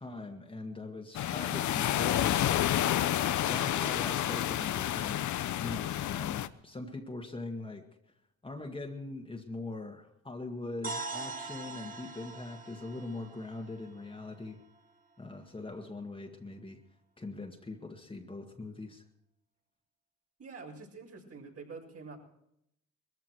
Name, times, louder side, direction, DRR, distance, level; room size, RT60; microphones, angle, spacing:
voice 1, 0.0-2.6 3.5-5.3 5.6-7.9 8.4-14.6 15.2-16.8 17.2-19.0, left 2 dB, 15° left, 3 dB, 1.9 m, -41 dB
sound 1, 1.1-6.5, left 12 dB, 70° left, 0.9 m, -29 dB
sound 2, 10.8-14.8, right 3 dB, 30° right, 1.9 m, -43 dB
voice 2, 20.4-22.2, right 4 dB, 50° right, -1 dB, 7.1 m, -46 dB
21.5 x 14.5 x 4.6 m, 0.79 s
cardioid pair, 90°, 30 cm